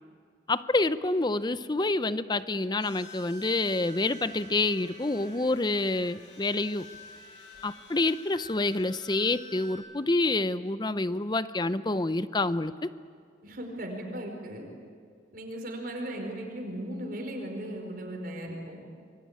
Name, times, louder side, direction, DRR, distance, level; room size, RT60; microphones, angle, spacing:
voice 1, 0.5-6.9 7.6-12.7, left 2 dB, 25° left, 14 dB, 0.6 m, -27 dB
sound 1, 2.8-9.8, left 1 dB, 70° left, 7.7 m, -49 dB
voice 2, 13.4-14.6 15.3-18.8, right 1 dB, 50° right, 2 dB, 4.8 m, -37 dB
28.0 x 22.5 x 8.8 m, 2.2 s
head